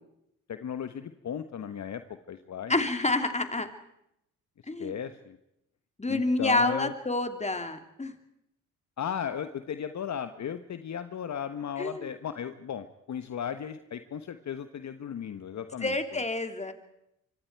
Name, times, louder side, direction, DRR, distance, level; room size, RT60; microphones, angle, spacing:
voice 1, 0.5-2.7 4.8-5.4 6.1-6.9 9.0-16.2, left 8 dB, 50° left, 10 dB, 1.2 m, -36 dB
voice 2, 2.7-3.7 4.7-4.9 6.0-8.1 11.8-12.1 15.8-16.7, left 2 dB, 20° left, 7 dB, 2.9 m, -28 dB
25.5 x 24.5 x 4.7 m, 0.80 s
hypercardioid pair, 50°, 36 cm